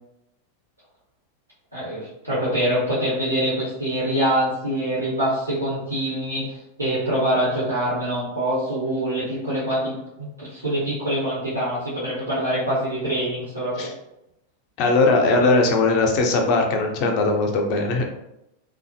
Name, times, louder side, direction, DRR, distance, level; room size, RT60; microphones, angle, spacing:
voice 1, 1.7-6.5 6.8-13.9 15.4-15.6, right 1 dB, 85° right, -11 dB, 1.0 m, -25 dB
voice 2, 14.8-18.0, left 3 dB, 40° left, 3 dB, 0.5 m, -19 dB
2.7 x 2.3 x 2.6 m, 0.85 s
figure-of-eight pair, 90°, 0 cm